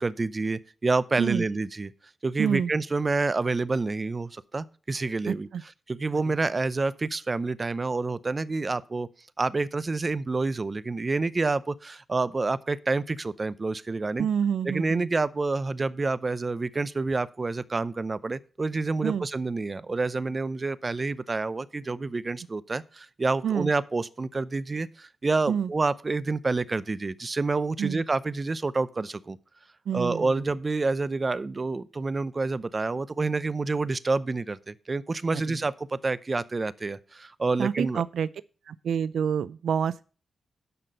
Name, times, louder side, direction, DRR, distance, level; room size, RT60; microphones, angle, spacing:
voice 1, 0.0-1.9 2.2-5.5 5.9-9.1 9.4-14.3 14.6-29.4 29.9-38.0, right 3 dB, 30° right, 0.6 m, -28 dB
voice 2, 2.4-2.7 5.3-5.6 6.1-6.2 14.2-15.1 19.0-19.2 23.4-23.7 25.5-25.7 27.8-28.0 29.9-30.3 35.3-35.6 37.6-38.3 38.7-40.0, right 8 dB, 80° right, 0.4 m, -28 dB
11.0 x 6.0 x 5.2 m
cardioid pair, 90°, 0 cm